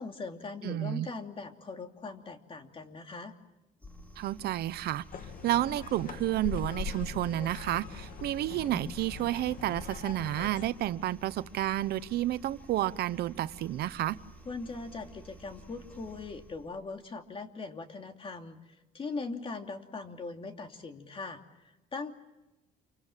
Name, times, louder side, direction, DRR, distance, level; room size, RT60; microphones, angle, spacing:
voice 1, 0.0-3.3 14.4-18.6 18.9-22.1, left 3 dB, 30° left, 2.8 m, -40 dB
voice 2, 0.6-1.1 4.2-5.0 5.4-14.2, right 13 dB, 70° right, 0.9 m, -31 dB
sound 1, 3.8-16.8, right 1 dB, 10° left, 4.4 m, -52 dB
sound 2, 5.1-10.7, left 6 dB, 55° left, 2.0 m, -41 dB
28.5 x 25.0 x 7.4 m
cardioid pair, 110°, 17 cm